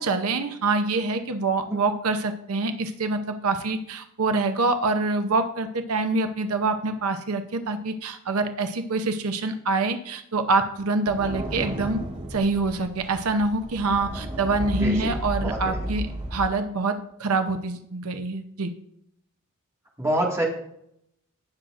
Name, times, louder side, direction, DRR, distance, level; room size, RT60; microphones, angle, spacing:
voice 1, 0.0-12.0 12.3-18.7, right 3 dB, 80° right, 7 dB, 0.8 m, -25 dB
sound 1, 11.1-16.4, equal, 30° right, 2.8 m, -33 dB
voice 2, 14.8-15.2 15.4-15.8 20.0-20.4, right 1 dB, 15° right, -2 dB, 1.9 m, -26 dB
18.0 x 6.4 x 2.5 m, 0.73 s
head